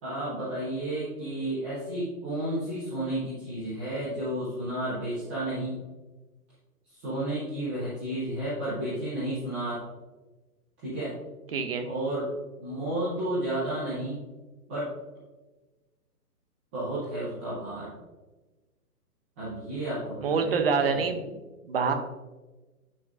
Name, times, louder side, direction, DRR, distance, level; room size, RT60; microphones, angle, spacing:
voice 1, 0.0-5.8 6.9-9.8 10.8-11.1 11.8-12.3 12.6-14.2 14.7-14.9 16.7-17.9 19.4-21.1, right 1 dB, 5° right, -12 dB, 0.7 m, -32 dB
voice 2, 11.5-11.9 20.2-21.4 21.6-21.9, right 5 dB, 40° right, 6 dB, 0.8 m, -26 dB
9.5 x 6.1 x 2.6 m, 1.2 s
hypercardioid pair, 165°, 48 cm